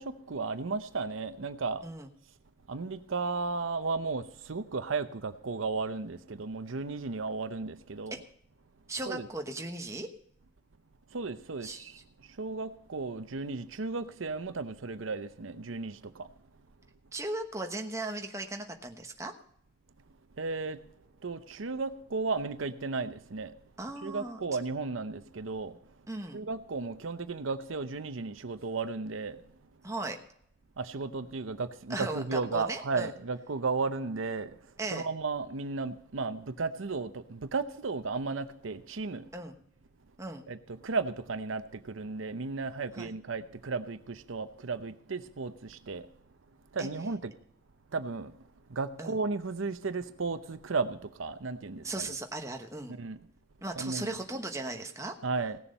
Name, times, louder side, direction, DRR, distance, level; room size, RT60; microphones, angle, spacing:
voice 1, 0.0-1.8 2.7-8.2 9.1-9.3 11.1-16.3 20.3-20.9 21.2-23.5 24.0-25.8 26.3-29.4 30.8-39.3 40.5-46.1 46.7-47.3 47.9-48.4 48.7-52.1 53.0-53.2 53.8-54.1 55.2-55.6, right 4 dB, 85° right, 0.7 m, -34 dB
voice 2, 8.9-10.1 11.6-11.9 17.1-19.3 23.8-24.4 26.1-26.4 29.8-30.2 31.9-33.1 34.8-35.1 39.3-39.5 40.2-40.4 43.0-43.1 46.8-46.9 49.0-49.1 51.8-53.0 53.6-55.1, right 2 dB, 15° right, 1.1 m, -37 dB
17.0 x 7.1 x 5.4 m
head